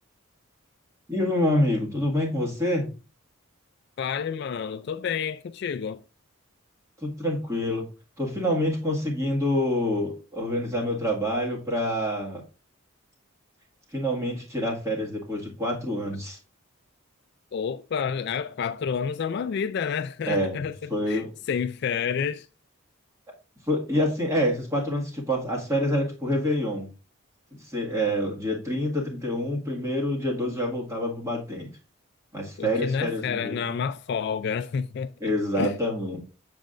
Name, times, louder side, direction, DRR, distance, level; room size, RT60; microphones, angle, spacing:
voice 1, 1.1-2.9 7.0-7.9 8.2-12.4 13.9-16.4 20.3-20.6 20.9-21.3 23.7-26.9 27.7-31.7 32.3-33.8 35.2-36.2, equal, 15° right, 1.8 m, -27 dB
voice 2, 4.0-6.0 17.5-22.5 32.6-35.1 35.6-35.8, left 6 dB, 50° left, 0.3 m, -29 dB
7.3 x 7.2 x 2.5 m
head